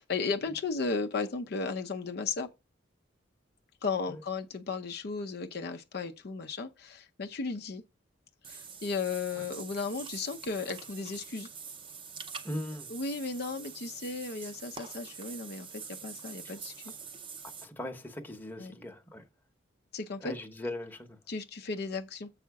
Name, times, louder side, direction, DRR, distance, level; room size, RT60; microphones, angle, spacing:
voice 1, 0.0-2.5 3.8-7.8 8.5-11.5 12.9-16.9 18.6-18.8 19.9-20.3 21.3-22.3, left 4 dB, 55° left, 0.6 m, -35 dB
Water / Bathtub (filling or washing), 8.4-17.6, right 6 dB, 25° right, 0.6 m, -45 dB
voice 2, 12.4-12.9 17.6-19.2 20.2-21.2, left 1 dB, 10° left, 0.9 m, -39 dB
7.4 x 4.9 x 4.7 m
head